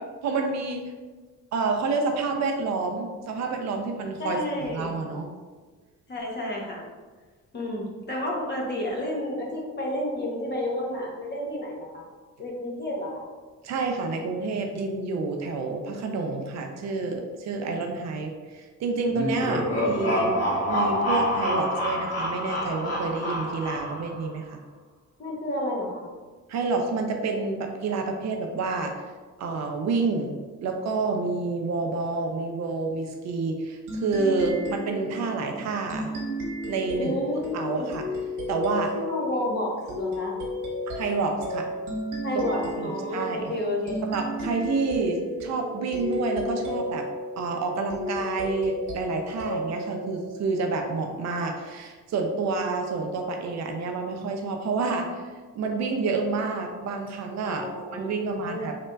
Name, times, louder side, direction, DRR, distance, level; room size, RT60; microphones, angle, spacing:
voice 1, 0.2-0.9 1.5-5.3 13.6-20.3 20.7-24.6 26.5-29.0 29.4-36.1 36.7-37.1 37.5-38.0 38.5-38.9 40.9-41.7 42.3-42.4 42.8-43.5 44.0-47.1 47.4-55.2 55.6-57.7 57.9-58.8, right 3 dB, 65° right, 3 dB, 0.5 m, -28 dB
voice 2, 4.2-5.0 6.1-6.8 7.5-12.0 12.4-13.2 19.6-20.7 25.2-26.1 37.0-37.9 38.9-40.3 42.2-44.0 57.4-58.8, left 1 dB, 35° left, -2 dB, 0.8 m, -31 dB
sound 1, 19.1-24.2, left 1 dB, 55° left, 1.2 m, -27 dB
sound 2, 33.9-51.0, left 1 dB, 90° right, 0.9 m, -34 dB
3.2 x 2.8 x 2.2 m, 1.4 s
cardioid pair, 90°, 30 cm